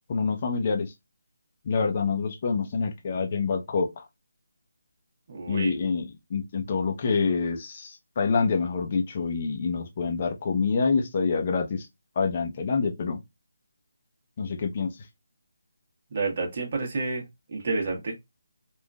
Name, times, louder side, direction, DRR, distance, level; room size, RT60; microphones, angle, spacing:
voice 1, 0.1-0.9 1.6-4.0 5.5-6.0 6.3-11.9 12.2-13.2 14.4-14.9, left 5 dB, 35° left, 0.6 m, -26 dB
voice 2, 5.3-5.8 16.1-18.1, right 3 dB, 40° right, 1.2 m, -30 dB
3.5 x 2.5 x 2.3 m
figure-of-eight pair, 160°, 0 cm